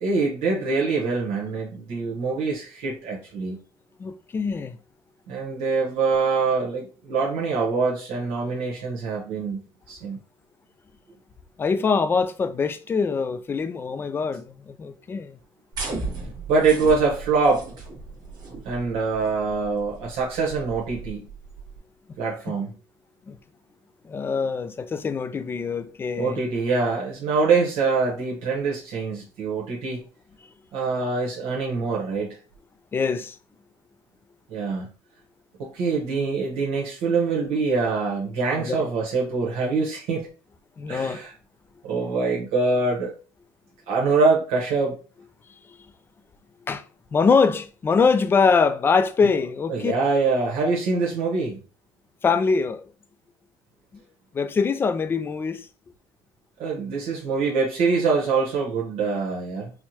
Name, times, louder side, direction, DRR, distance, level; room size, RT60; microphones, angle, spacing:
voice 1, 0.0-3.6 5.3-9.6 9.9-10.2 16.5-17.6 18.6-21.2 22.2-22.7 26.2-30.0 30.7-32.4 34.5-34.9 35.6-40.3 40.9-41.3 41.8-43.1 43.9-45.0 49.7-51.6 56.6-59.7, right 4 dB, 75° right, 1.0 m, -24 dB
voice 2, 4.0-4.8 11.6-15.4 22.5-22.6 23.3-23.4 24.0-26.4 32.9-33.4 38.6-38.9 40.8-41.2 46.7-46.8 47.1-49.9 52.2-52.8 54.3-55.7, left 5 dB, 20° left, 0.3 m, -23 dB
sound 1, 15.7-21.8, right 3 dB, 40° right, 1.2 m, -36 dB
4.4 x 2.1 x 2.8 m
cardioid pair, 135°, 10 cm